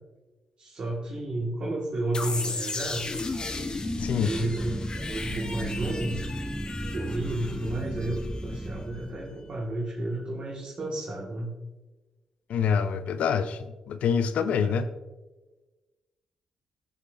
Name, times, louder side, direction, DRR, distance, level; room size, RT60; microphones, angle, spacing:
voice 1, 0.6-3.1 4.2-6.2 6.9-11.6 14.5-14.8, right 1 dB, 50° right, -3 dB, 2.2 m, -32 dB
sound 1, 2.1-8.9, left 3 dB, 40° left, 1.4 m, -36 dB
sound 2, 2.8-9.8, right 1 dB, 5° right, 0.7 m, -36 dB
voice 2, 4.0-4.4 12.5-14.9, left 7 dB, 70° left, 12 dB, 0.7 m, -26 dB
15.0 x 6.7 x 2.8 m, 1.2 s
supercardioid pair, 55°, 2 cm